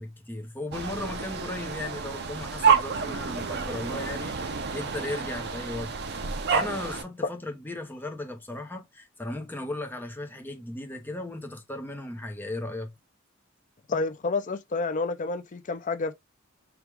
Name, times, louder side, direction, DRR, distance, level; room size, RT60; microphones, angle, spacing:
voice 1, 0.0-5.9 6.3-12.9, left 2 dB, 10° left, 0.8 m, -36 dB
sound 1, 0.7-7.0, right 6 dB, 50° right, 0.6 m, -29 dB
voice 2, 13.9-16.1, left 3 dB, 35° left, 0.5 m, -29 dB
4.7 x 2.4 x 3.4 m
head